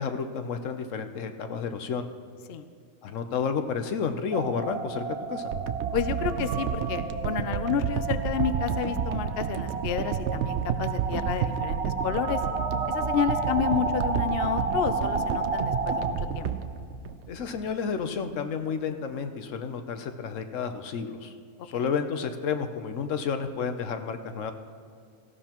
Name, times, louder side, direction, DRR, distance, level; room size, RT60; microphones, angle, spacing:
voice 1, 0.0-2.1 3.0-5.5 17.3-21.3 21.6-24.5, left 6 dB, 75° left, 8 dB, 1.1 m, -31 dB
sound 1, 4.3-16.1, right 3 dB, 35° right, 0.8 m, -32 dB
sound 2, 5.5-17.7 18.3-18.4, right 8 dB, 70° right, 0.8 m, -31 dB
voice 2, 5.9-12.4 12.9-16.5 21.7-21.9, left 8 dB, 60° left, 10 dB, 0.7 m, -30 dB
17.5 x 15.0 x 3.0 m, 2.3 s
omnidirectional pair, 1.3 m